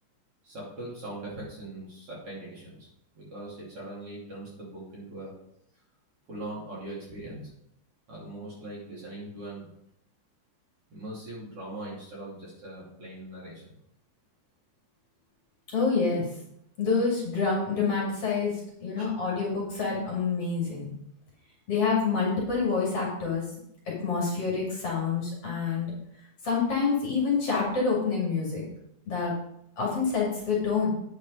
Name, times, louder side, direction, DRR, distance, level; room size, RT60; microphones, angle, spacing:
voice 1, 0.4-2.8 3.1-5.3 6.3-7.4 8.1-9.7 10.9-13.8 19.0-19.1, right 1 dB, 45° right, -5 dB, 3.4 m, -40 dB
voice 2, 15.7-16.2 16.8-20.9 21.7-23.4 24.0-25.9 26.4-28.6 29.1-29.3 29.8-30.9, left 5 dB, 45° left, -4 dB, 3.1 m, -27 dB
9.1 x 5.3 x 5.3 m, 0.76 s
omnidirectional pair, 3.8 m